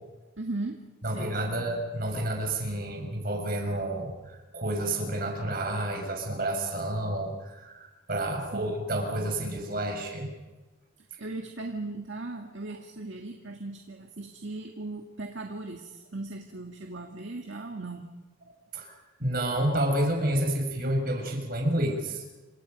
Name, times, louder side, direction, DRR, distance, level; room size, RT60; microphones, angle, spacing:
voice 1, 0.4-1.6 8.5-8.7 11.0-18.1 18.4-18.7, right 2 dB, 60° right, 2 dB, 1.9 m, -38 dB
voice 2, 1.0-10.3 18.7-18.9 19.2-22.2, right 1 dB, 45° right, 2 dB, 6.3 m, -29 dB
28.5 x 25.5 x 5.3 m, 1.2 s
head